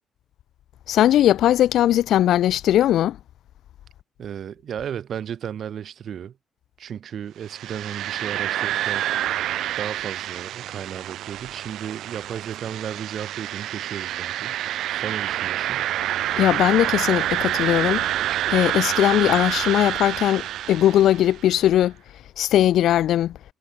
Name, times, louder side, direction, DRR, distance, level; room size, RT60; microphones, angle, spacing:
voice 1, 0.9-3.2 16.4-18.0 18.5-21.9 22.4-23.4, left 12 dB, 75° left, 2.5 m, -19 dB
voice 2, 4.2-6.4 6.8-9.1 9.8-14.5 14.9-15.9, right 9 dB, 60° right, 6.5 m, -34 dB
sound 1, 7.5-21.4, right 13 dB, 80° right, 1.8 m, -27 dB
cardioid pair, 90°, 0 cm